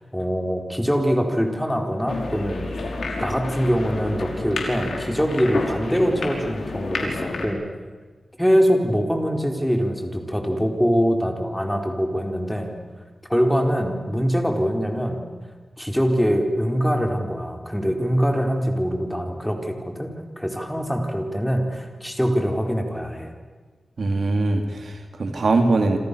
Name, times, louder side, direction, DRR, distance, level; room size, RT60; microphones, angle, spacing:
voice 1, 0.0-2.9 3.2-7.7 8.4-12.7 13.3-15.2 15.8-20.1 20.4-23.3, equal, 5° left, 3 dB, 4.3 m, -23 dB
sound 1, 2.1-7.5, left 3 dB, 80° left, 5.3 m, -30 dB
voice 2, 24.0-26.0, right 3 dB, 65° right, 5 dB, 3.7 m, -21 dB
28.5 x 27.0 x 6.9 m, 1.4 s
wide cardioid pair, 75°, 0 cm